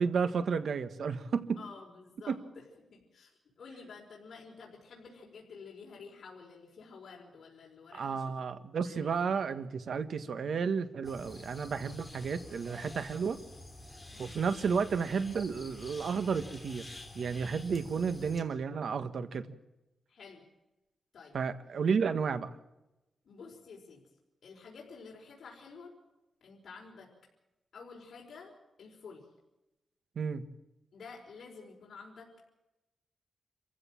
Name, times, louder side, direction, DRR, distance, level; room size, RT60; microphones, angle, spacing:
voice 1, 0.0-1.6 2.3-2.4 7.9-13.4 14.2-19.5 21.3-22.5 30.1-30.5, right 5 dB, 65° right, 10 dB, 1.6 m, -32 dB
voice 2, 1.6-9.5 14.1-14.4 20.1-20.4 21.1-21.4 23.2-24.0 24.4-25.9 26.4-27.1 27.7-28.5 28.8-29.3 30.9-32.3, left 5 dB, 65° left, -1 dB, 5.0 m, -51 dB
sound 1, 11.0-18.4, left 2 dB, 15° left, 3.4 m, -49 dB
26.5 x 15.5 x 7.6 m, 0.97 s
wide cardioid pair, 140°, 0 cm